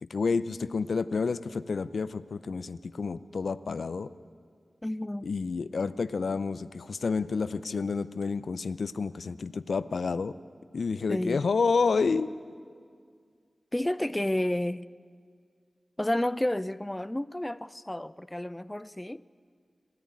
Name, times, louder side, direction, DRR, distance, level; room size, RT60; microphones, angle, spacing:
voice 1, 0.0-4.1 5.2-10.4 10.7-12.3, left 4 dB, 75° left, 0.5 m, -29 dB
voice 2, 4.8-5.4 11.1-11.4 13.7-14.9 16.0-19.2, left 1 dB, 15° left, 0.4 m, -31 dB
27.0 x 10.5 x 9.5 m
cardioid pair, 55°, 0 cm